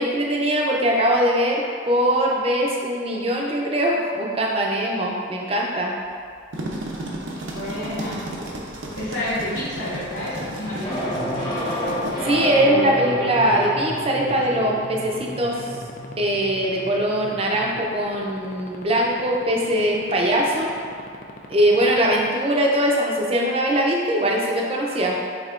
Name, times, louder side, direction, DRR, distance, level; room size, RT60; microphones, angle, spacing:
voice 1, 0.0-5.9 12.2-15.7 16.2-20.7 21.5-25.2, right 1 dB, 30° right, -1 dB, 0.5 m, -21 dB
sound 1, 6.3-12.1, right 1 dB, 80° right, 0.6 m, -33 dB
voice 2, 7.5-8.2 9.0-11.2, left 1 dB, 85° left, -13 dB, 1.2 m, -29 dB
sound 2, 10.0-22.3, left 3 dB, 40° left, 0.3 m, -38 dB
sound 3, 10.8-17.8, equal, 25° left, 1.1 m, -30 dB
5.6 x 3.5 x 2.4 m, 2.2 s
head